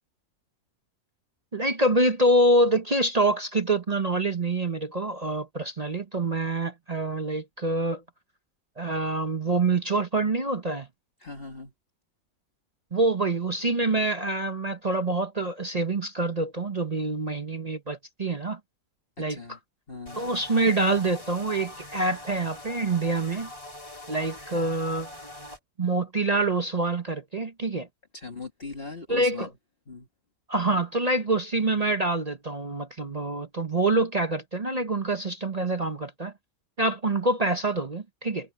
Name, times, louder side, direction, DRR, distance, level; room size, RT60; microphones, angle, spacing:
voice 1, 1.5-8.0 8.8-10.9 12.9-18.6 19.2-19.4 20.2-23.5 24.1-25.1 25.8-27.9 29.1-29.5 30.5-36.3 36.8-38.5, right 2 dB, 30° right, 0.9 m, -26 dB
voice 2, 11.2-11.7 19.2-19.6 19.9-20.3 28.1-29.5 29.9-30.1, left 3 dB, 40° left, 2.4 m, -39 dB
sound 1, 20.1-25.6, left 1 dB, 20° left, 4.3 m, -43 dB
omnidirectional pair, 1.5 m